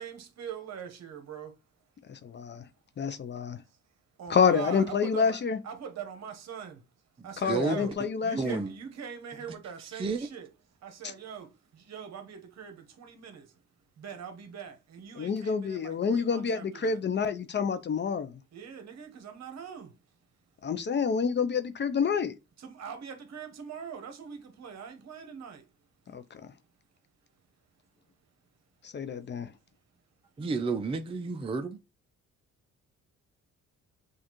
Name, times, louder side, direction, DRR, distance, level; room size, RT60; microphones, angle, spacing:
voice 1, 0.0-1.6 3.6-6.9 7.2-7.9 8.2-13.6 14.0-17.0 18.5-20.2 22.6-25.7 26.0-26.2, right 7 dB, 60° right, 1.1 m, -43 dB
voice 2, 3.0-3.6 4.3-5.6 7.4-8.6 15.2-18.3 20.6-22.3 26.1-26.4 28.8-29.5, left 6 dB, 35° left, 0.5 m, -28 dB
voice 3, 7.5-7.8 8.4-8.7 10.0-10.2 30.4-31.8, right 4 dB, 20° right, 0.5 m, -30 dB
6.4 x 2.5 x 3.0 m
cardioid pair, 90°, 30 cm